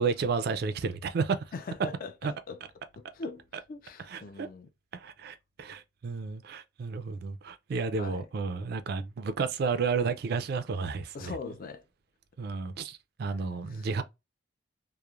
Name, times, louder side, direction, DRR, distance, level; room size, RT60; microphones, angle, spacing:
voice 1, 0.0-1.4 2.2-2.3 4.1-4.5 4.9-11.3 12.4-14.0, right 5 dB, 55° right, 0.3 m, -32 dB
voice 2, 1.5-2.1 2.5-2.6 3.0-4.7 7.9-8.3 11.1-11.8 13.3-13.4 13.7-13.9, left 4 dB, 50° left, 0.4 m, -41 dB
3.0 x 2.0 x 2.3 m
head